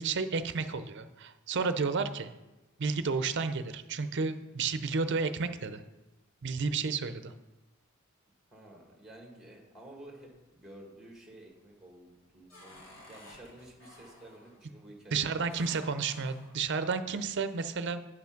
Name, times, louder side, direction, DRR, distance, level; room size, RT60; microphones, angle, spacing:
voice 1, 0.0-2.3 2.8-5.8 6.4-7.3 15.1-18.0, right 4 dB, 55° right, 11 dB, 0.6 m, -31 dB
voice 2, 8.5-15.9, right 1 dB, 5° right, 0 dB, 1.7 m, -52 dB
sound 1, 10.2-10.7 11.1-11.6 12.0-14.6 15.5-16.6, left 1 dB, 65° left, 2.9 m, -54 dB
9.3 x 5.9 x 5.9 m, 1.1 s
head